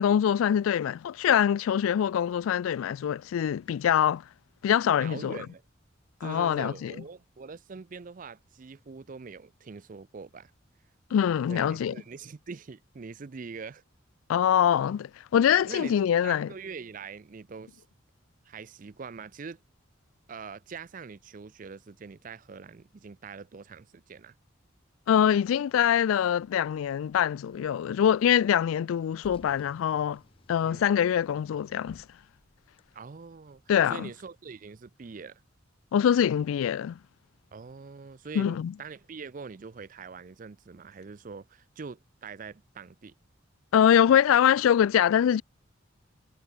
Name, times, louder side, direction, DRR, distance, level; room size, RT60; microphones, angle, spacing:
voice 1, 0.0-4.2 4.6-5.4 6.2-6.9 11.1-11.9 14.3-16.5 25.1-30.2 30.5-32.0 33.7-34.1 35.9-37.0 38.4-38.7 43.7-45.4, left 9 dB, 90° left, 0.3 m, -24 dB
voice 2, 5.0-5.6 6.2-10.5 11.5-13.8 14.5-14.6 15.7-17.8 18.4-19.6 20.3-24.4 30.7-30.9 32.9-35.4 37.5-43.1, right 5 dB, 40° right, 0.4 m, -43 dB
Car, 26.9-33.9, left 1 dB, 25° left, 2.9 m, -59 dB
head